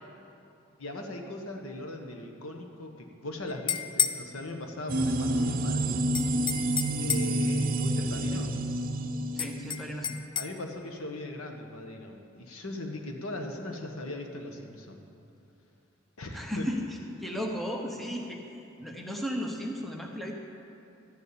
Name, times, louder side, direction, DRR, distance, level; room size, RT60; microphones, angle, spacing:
voice 1, 0.8-6.0 7.0-8.5 10.3-15.0 16.2-16.7, left 1 dB, 80° left, 3 dB, 1.4 m, -39 dB
sound 1, 3.5-4.2 6.1-7.4 9.4-10.5, left 7 dB, 25° left, 0.3 m, -30 dB
sound 2, 4.9-10.1, right 1 dB, 40° right, 0.7 m, -29 dB
voice 2, 9.3-10.2 16.3-16.9 17.2-18.4 18.8-20.3, equal, ahead, 0 dB, 0.9 m, -34 dB
13.0 x 7.0 x 8.7 m, 2.7 s
head